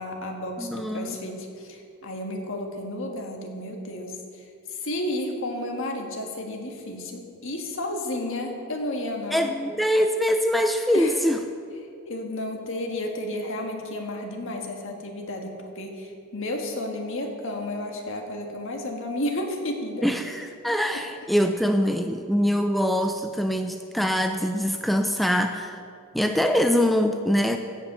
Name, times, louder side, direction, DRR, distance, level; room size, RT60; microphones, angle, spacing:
voice 1, 0.0-4.2 4.7-9.5 10.9-11.2 12.0-20.1, left 1 dB, 60° left, 2 dB, 1.6 m, -32 dB
voice 2, 0.6-1.2 9.3-11.4 20.0-25.8 26.1-27.6, equal, ahead, 5 dB, 0.4 m, -23 dB
15.5 x 5.7 x 6.7 m, 2.4 s
head